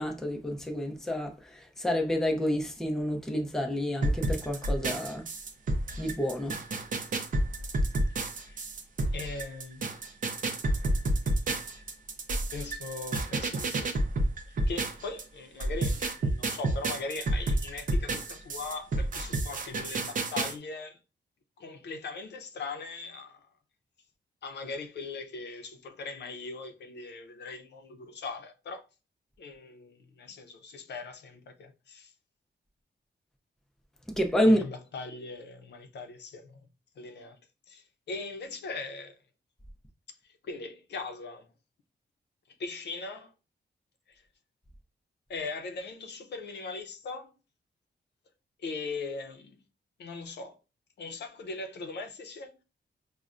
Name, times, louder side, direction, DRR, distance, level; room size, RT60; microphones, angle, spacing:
voice 1, 0.0-5.3 6.0-6.6 34.2-34.6, equal, 5° left, 0.5 m, -29 dB
sound 1, 4.0-15.2 15.6-20.5, right 2 dB, 50° right, 0.6 m, -30 dB
voice 2, 9.1-10.2 10.4-10.5 11.6-11.8 12.5-14.0 14.5-21.0 21.6-23.5 24.4-28.9 29.4-32.1 34.5-36.7 37.0-37.4 37.7-39.2 40.4-41.5 42.6-43.3 44.1-44.2 45.3-47.3 48.6-49.6 50.0-50.6 51.0-52.6, left 3 dB, 70° left, 0.6 m, -40 dB
5.3 x 2.1 x 2.4 m
wide cardioid pair, 160°, 18 cm